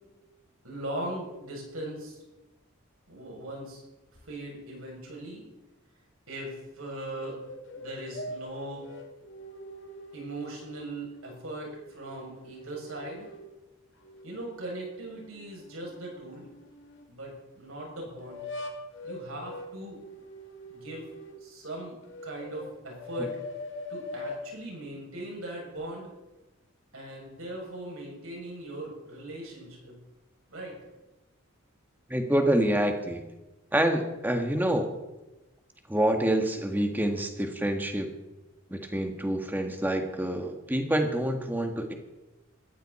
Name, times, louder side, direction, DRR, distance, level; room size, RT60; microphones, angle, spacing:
voice 1, 0.6-2.2 3.1-3.8 4.2-5.4 6.3-7.4 7.7-8.8 10.1-13.3 14.2-16.5 17.1-18.5 19.0-20.0 20.7-21.0 21.4-22.0 22.2-23.3 23.9-26.1 26.9-30.0 30.5-30.8, right 1 dB, 80° right, -1 dB, 7.3 m, -39 dB
sound 1, 7.4-10.7 11.2-13.5 14.0-17.1 18.2-21.5 22.0-24.5, left 1 dB, 60° left, 2.5 m, -43 dB
voice 2, 32.1-33.2 33.7-34.9 35.9-38.1 38.7-41.9, right 1 dB, 10° right, 5 dB, 1.7 m, -27 dB
20.5 x 15.0 x 4.3 m, 1.0 s
head